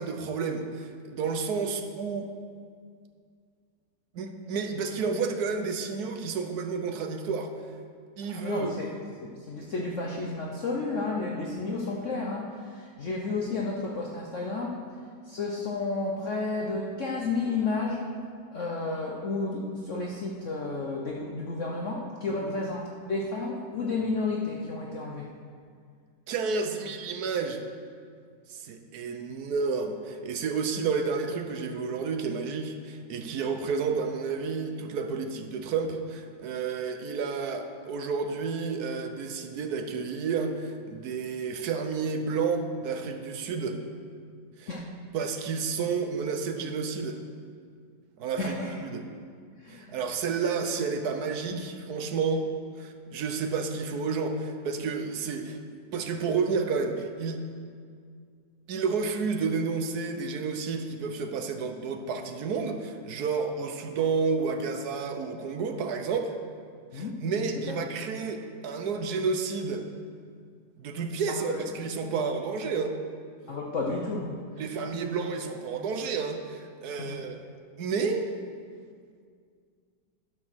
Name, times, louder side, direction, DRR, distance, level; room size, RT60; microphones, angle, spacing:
voice 1, 0.0-2.3 4.1-7.5 8.2-8.7 22.3-22.5 26.3-27.6 28.5-43.8 44.6-44.7 45.1-47.2 48.2-48.5 48.8-49.0 49.7-52.5 52.8-55.6 55.9-57.4 58.7-66.4 66.9-69.8 70.8-73.0 74.6-77.4 77.8-78.3, right 5 dB, 65° right, 6 dB, 1.2 m, -30 dB
voice 2, 8.3-8.9 9.2-14.9 15.2-18.2 18.5-25.3 29.3-29.4 44.7-44.9 48.4-48.8 49.6-49.9 66.9-67.2 67.7-67.8 71.3-71.7 73.5-75.1 77.0-77.3, left 3 dB, 55° left, -2 dB, 1.0 m, -32 dB
10.5 x 6.1 x 6.2 m, 2.1 s
omnidirectional pair, 2.0 m